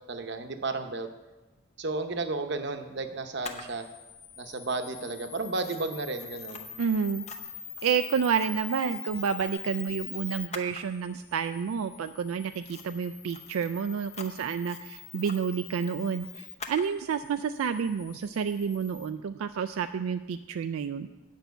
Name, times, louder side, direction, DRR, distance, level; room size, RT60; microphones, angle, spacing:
voice 1, 0.1-1.1 1.8-3.9 4.4-6.7, right 3 dB, 55° right, 7 dB, 0.8 m, -33 dB
Camera, 3.4-19.1, left 6 dB, 30° left, 0.7 m, -43 dB
voice 2, 6.8-7.2 7.8-21.1, right 6 dB, 80° right, 10 dB, 0.3 m, -30 dB
9.2 x 5.6 x 8.0 m, 1.1 s
head